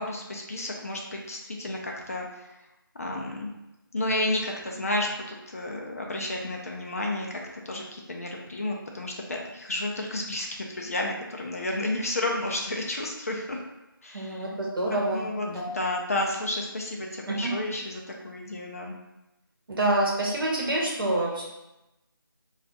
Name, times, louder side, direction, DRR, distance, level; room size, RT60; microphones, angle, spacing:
voice 1, 0.0-2.5 3.0-3.5 3.9-7.4 7.7-13.6 14.0-14.5 15.1-15.5 15.7-19.0, left 1 dB, 40° left, 0 dB, 0.5 m, -31 dB
voice 2, 14.1-15.7 17.3-17.5 19.7-21.5, right 1 dB, 70° right, -4 dB, 0.9 m, -27 dB
2.4 x 2.4 x 3.9 m, 0.96 s
figure-of-eight pair, 165°, 12 cm